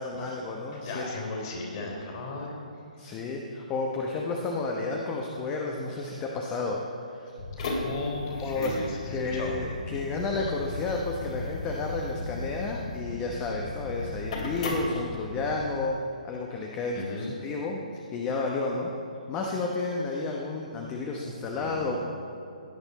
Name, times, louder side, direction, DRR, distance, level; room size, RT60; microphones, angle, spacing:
voice 1, 0.0-1.2 3.0-6.8 7.1-7.3 7.6-7.7 8.4-8.7 9.1-16.0 16.2-17.8 18.1-18.9 19.3-22.0, left 3 dB, 20° left, 0 dB, 0.9 m, -31 dB
voice 2, 0.7-2.7 7.8-9.6 16.9-17.3 21.5-22.0, left 2 dB, 40° left, 0 dB, 3.4 m, -36 dB
sound 1, 7.4-15.6, left 2 dB, 55° left, 2.5 m, -35 dB
16.5 x 8.9 x 4.2 m, 2.7 s
figure-of-eight pair, 135°, 4 cm